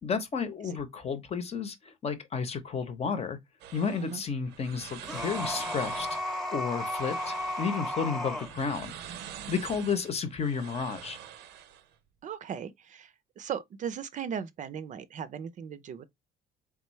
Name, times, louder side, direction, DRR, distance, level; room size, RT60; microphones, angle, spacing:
voice 1, 0.0-3.4 3.7-8.9 9.5-11.2, left 5 dB, 40° left, 0.8 m, -32 dB
sound 1, 3.6-11.9, right 9 dB, 85° right, 0.7 m, -45 dB
sound 2, 5.0-8.5, left 1 dB, ahead, 0.9 m, -34 dB
voice 2, 12.2-16.0, right 8 dB, 45° right, 0.5 m, -37 dB
3.6 x 3.4 x 3.1 m
cardioid pair, 110°, 17 cm